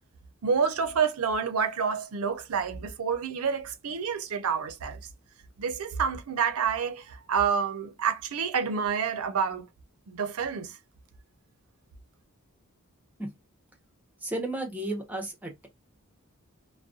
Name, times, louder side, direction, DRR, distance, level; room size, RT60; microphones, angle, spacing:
voice 1, 0.4-5.0 5.6-9.7 10.1-10.7, right 6 dB, 80° right, 0.5 m, -28 dB
voice 2, 14.2-15.7, right 1 dB, 10° right, 0.7 m, -33 dB
2.4 x 2.1 x 2.5 m
head